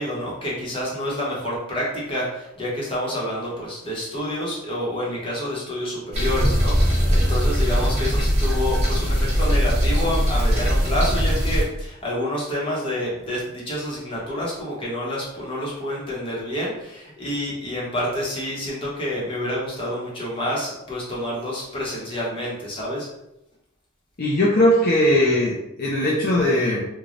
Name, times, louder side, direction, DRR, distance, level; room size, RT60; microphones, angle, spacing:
voice 1, 0.0-23.1, left 1 dB, 25° left, -5 dB, 1.0 m, -28 dB
sound 1, 6.1-11.6, equal, 30° right, 1.0 m, -20 dB
voice 2, 24.2-26.9, left 1 dB, 45° left, -5 dB, 0.5 m, -19 dB
3.1 x 2.2 x 3.8 m, 0.87 s
head